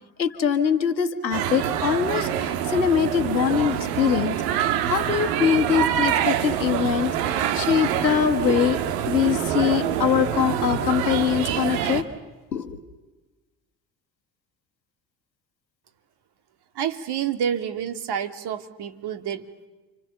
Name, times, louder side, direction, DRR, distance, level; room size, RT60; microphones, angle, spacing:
voice 1, 0.2-8.8 9.1-12.1 12.5-12.8, left 8 dB, 90° left, 10 dB, 1.5 m, -23 dB
sound 1, 1.3-12.0, right 10 dB, 70° right, 1.8 m, -25 dB
voice 2, 16.7-19.7, right 8 dB, 50° right, 8 dB, 2.4 m, -29 dB
30.0 x 26.0 x 6.9 m, 1.2 s
figure-of-eight pair, 60°, 50 cm